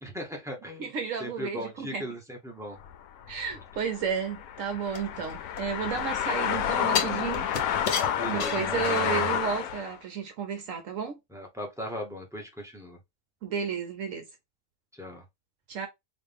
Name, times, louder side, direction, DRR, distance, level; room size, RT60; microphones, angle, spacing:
voice 1, 0.0-0.9 1.2-2.8 8.1-8.9 11.3-13.0 15.0-15.2, equal, 5° right, 0.8 m, -38 dB
voice 2, 0.8-2.0 3.3-7.5 8.2-11.1 13.4-14.2 15.7-15.9, right 7 dB, 65° right, 1.0 m, -32 dB
sound 1, 2.8-10.0, left 9 dB, 90° left, 1.1 m, -30 dB
sound 2, 4.9-6.1 6.9-9.3 9.7-9.8, left 6 dB, 55° left, 1.0 m, -32 dB
4.0 x 2.5 x 3.4 m
omnidirectional pair, 1.5 m